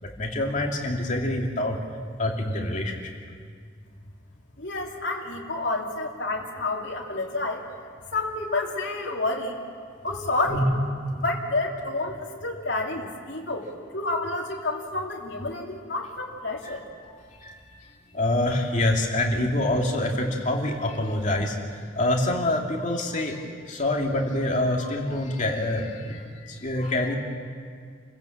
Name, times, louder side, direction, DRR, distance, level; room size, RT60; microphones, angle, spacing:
voice 1, 0.0-1.8 2.2-3.1 10.5-10.8 16.6-16.8 17.1-17.6 18.1-27.2, left 1 dB, 40° left, 0 dB, 2.8 m, -26 dB
voice 2, 4.6-7.6 8.1-9.6 10.0-10.6 11.2-13.7 13.9-16.8, left 2 dB, 65° left, -2 dB, 3.0 m, -29 dB
28.5 x 16.0 x 7.5 m, 2.1 s
head